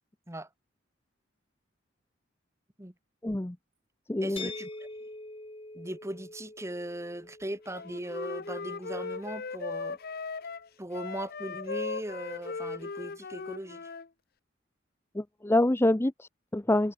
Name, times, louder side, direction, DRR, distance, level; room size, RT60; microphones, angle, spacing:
voice 1, 3.2-3.6 4.1-4.5 15.1-16.9, left 1 dB, 15° left, 0.6 m, -26 dB
voice 2, 4.2-4.9 5.7-10.0 10.8-13.9, right 1 dB, 15° right, 1.9 m, -39 dB
sound 1, 4.4-10.1, left 3 dB, 30° left, 4.5 m, -46 dB
Wind instrument woodwind instrument, 7.7-14.1, left 4 dB, 55° left, 0.8 m, -38 dB
head